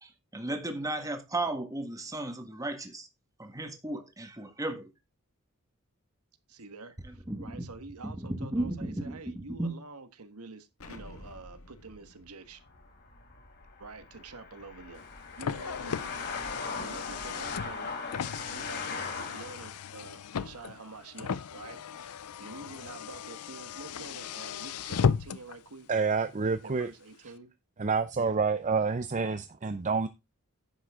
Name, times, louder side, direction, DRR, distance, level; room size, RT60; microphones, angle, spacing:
voice 1, 0.0-3.1 3.4-4.9 7.3-7.6 8.0-9.7, right 2 dB, 15° right, 1.5 m, -35 dB
voice 2, 6.5-12.6 13.8-15.1 15.4-17.9 18.5-25.9 26.6-27.5 28.1-28.4, right 3 dB, 80° right, 1.5 m, -47 dB
Explosion, 10.8-15.5, left 1 dB, 65° left, 2.0 m, -53 dB
sound 1, 12.6-19.8, left 4 dB, 50° left, 3.5 m, -39 dB
Car, 14.9-25.6, left 6 dB, 85° left, 0.5 m, -35 dB
voice 3, 25.9-26.9 27.8-30.1, right 4 dB, 35° right, 0.6 m, -28 dB
10.5 x 7.8 x 3.6 m
head